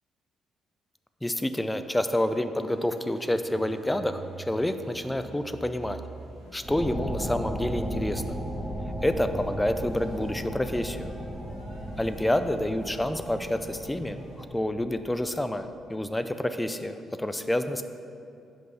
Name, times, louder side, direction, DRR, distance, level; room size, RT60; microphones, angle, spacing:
voice 1, 1.2-6.0 6.5-8.4 9.0-11.1 12.0-17.8, left 1 dB, 10° left, 9 dB, 0.5 m, -28 dB
sound 1, 2.6-14.4, right 2 dB, 85° right, 2.0 m, -46 dB
sound 2, 6.6-15.8, equal, 5° right, 1.8 m, -36 dB
7.8 x 5.4 x 5.6 m, 2.6 s
hypercardioid pair, 45°, 0 cm